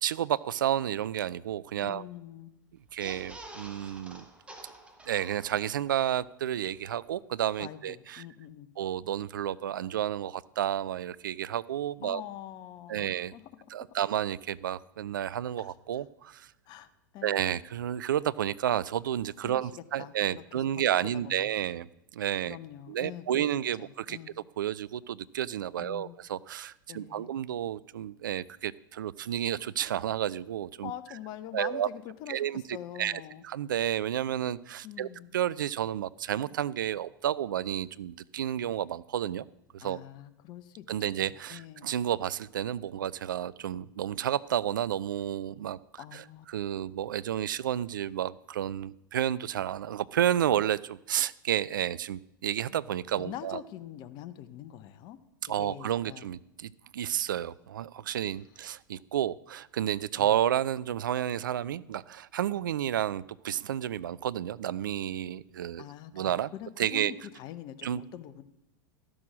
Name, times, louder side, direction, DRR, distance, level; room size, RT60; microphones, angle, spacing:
voice 1, 0.0-2.1 2.9-4.2 5.1-8.3 8.8-12.2 12.9-13.3 13.7-16.5 17.2-21.9 22.1-22.6 22.9-24.2 24.6-30.9 31.5-31.9 32.3-39.5 39.7-40.0 40.9-53.6 55.4-65.9 66.1-67.1 67.8-68.0, right 11 dB, 70° right, 20 dB, 0.4 m, -31 dB
voice 2, 1.8-2.5 7.6-8.7 12.0-13.4 13.9-14.0 15.6-15.7 16.7-17.6 19.4-19.7 20.0-20.4 20.8-20.9 21.2-21.5 22.5-23.5 23.8-24.3 25.8-26.1 26.9-27.3 30.8-33.4 34.8-35.4 39.8-41.1 41.5-41.9 46.0-46.5 53.2-55.2 55.6-56.3 60.2-60.3 65.8-68.4, left 11 dB, 40° left, 11 dB, 0.8 m, -44 dB
sound 1, 2.9-5.9 6.2-6.3 6.5-6.7, right 1 dB, 10° right, 1.3 m, -48 dB
12.5 x 6.2 x 6.1 m, 0.86 s
figure-of-eight pair, 95°, 11 cm